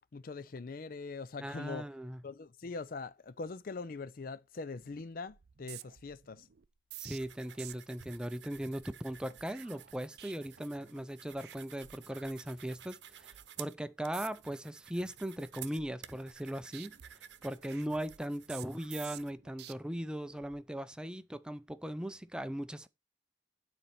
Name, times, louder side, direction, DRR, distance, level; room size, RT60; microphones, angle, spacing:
voice 1, 0.1-1.9 2.2-6.5, left 4 dB, 50° left, 0.5 m, -42 dB
voice 2, 1.4-2.2 7.0-17.0 17.4-22.9, equal, 5° right, 0.4 m, -39 dB
sound 1, 4.7-5.0 5.3-11.0 11.3-11.6 11.8-12.8 13.2-13.5 14.0-14.6 15.0-16.5 16.7-19.7 20.3-20.6, right 13 dB, 60° right, 0.5 m, -52 dB
sound 2, 7.1-19.3, right 11 dB, 85° right, 0.9 m, -53 dB
9.5 x 4.4 x 5.8 m
head